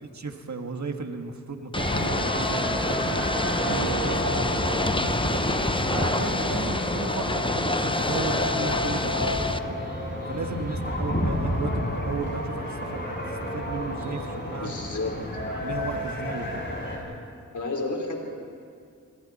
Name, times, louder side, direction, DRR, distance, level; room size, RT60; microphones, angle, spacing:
voice 1, 0.0-3.3 3.6-5.4 5.9-9.8 10.3-13.2 13.5-14.7 15.2-16.7, right 4 dB, 55° right, 5 dB, 1.8 m, -35 dB
Ocean / Boat Water vehicle, 1.7-9.6, left 2 dB, 15° left, 0.8 m, -28 dB
sound 1, 1.8-17.0, left 1 dB, 35° left, 7.7 m, -30 dB
voice 2, 14.6-15.1 17.5-18.2, left 3 dB, 60° left, 1 dB, 4.0 m, -30 dB
29.0 x 22.0 x 4.3 m, 2.3 s
cardioid pair, 55°, 33 cm